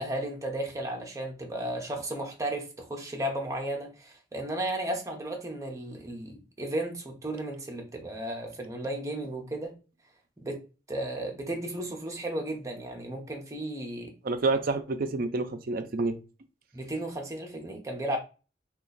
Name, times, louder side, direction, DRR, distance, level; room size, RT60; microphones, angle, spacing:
voice 1, 0.0-9.8 10.4-10.6 10.9-14.1 16.7-18.2, right 1 dB, 20° right, 0.8 m, -34 dB
voice 2, 14.2-16.1, right 3 dB, 55° right, 0.5 m, -28 dB
3.0 x 2.4 x 3.9 m
head